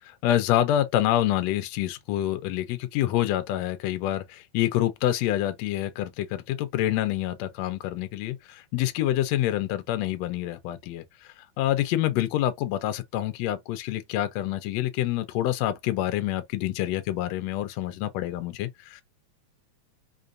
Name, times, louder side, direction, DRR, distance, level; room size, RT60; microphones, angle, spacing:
voice 1, 0.2-11.0 11.6-19.0, left 13 dB, 75° left, 1.7 m, -27 dB
5.1 x 2.5 x 2.5 m
omnidirectional pair, 3.3 m